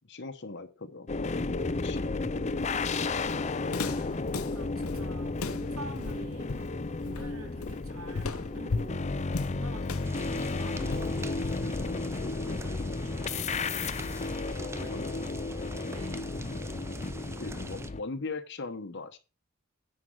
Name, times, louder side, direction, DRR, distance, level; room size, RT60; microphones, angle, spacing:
voice 1, 0.1-1.1 1.6-2.2 14.9-15.3 17.4-19.2, left 3 dB, 55° left, 1.1 m, -39 dB
sound 1, 1.1-18.0, left 3 dB, 30° left, 0.5 m, -33 dB
Walk footsteps, 2.6-11.9, left 4 dB, 80° left, 0.8 m, -37 dB
voice 2, 2.7-4.1 4.4-6.8 7.0-14.0 14.5-15.0 15.8-16.4 16.9-17.0 17.5-17.8, right 2 dB, 70° right, 2.5 m, -48 dB
sound 2, 10.0-17.9, right 2 dB, 10° right, 0.6 m, -43 dB
10.0 x 4.6 x 6.3 m
head